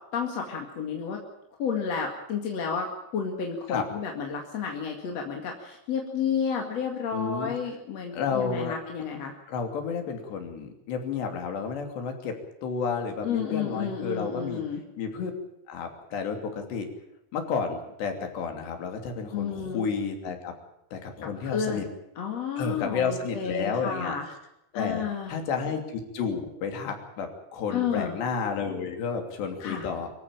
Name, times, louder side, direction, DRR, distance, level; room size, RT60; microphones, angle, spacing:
voice 1, 0.1-1.2 1.6-9.3 13.2-14.8 19.3-19.8 21.4-21.8 22.2-24.3 24.7-25.3 27.7-28.2 29.6-29.9, left 6 dB, 45° left, 2 dB, 2.7 m, -31 dB
voice 2, 7.1-7.5 8.1-8.8 9.5-14.6 15.0-15.3 15.7-16.9 17.3-20.5 20.9-21.9 22.6-24.1 24.7-30.1, left 5 dB, 90° left, 5 dB, 5.1 m, -31 dB
25.0 x 14.0 x 8.8 m, 0.84 s
omnidirectional pair, 4.8 m